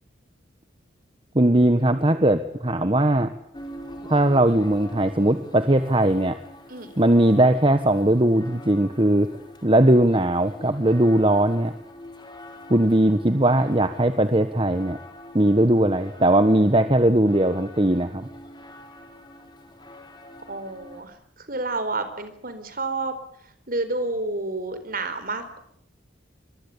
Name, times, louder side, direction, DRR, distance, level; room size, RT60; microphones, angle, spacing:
voice 1, 1.3-3.3 4.1-6.4 7.0-9.3 9.6-11.7 12.7-15.0 15.3-18.3, right 1 dB, 25° right, 9 dB, 1.3 m, -19 dB
sound 1, 3.5-21.0, left 1 dB, 25° left, 3.7 m, -44 dB
voice 2, 20.5-23.1 23.4-25.6, right 2 dB, 50° right, 10 dB, 4.3 m, -30 dB
25.0 x 22.0 x 8.6 m, 0.69 s
head